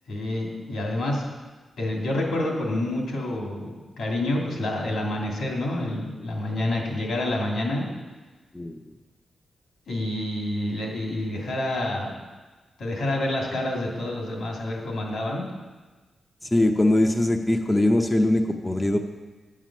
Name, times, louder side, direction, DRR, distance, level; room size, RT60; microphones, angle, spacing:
voice 1, 0.1-1.2 1.8-7.8 9.9-12.1 12.8-15.4, left 1 dB, 80° left, -1 dB, 2.5 m, -28 dB
voice 2, 16.4-19.0, left 1 dB, 15° left, 4 dB, 0.6 m, -21 dB
9.3 x 7.5 x 6.1 m, 1.3 s
wide cardioid pair, 130°, 0 cm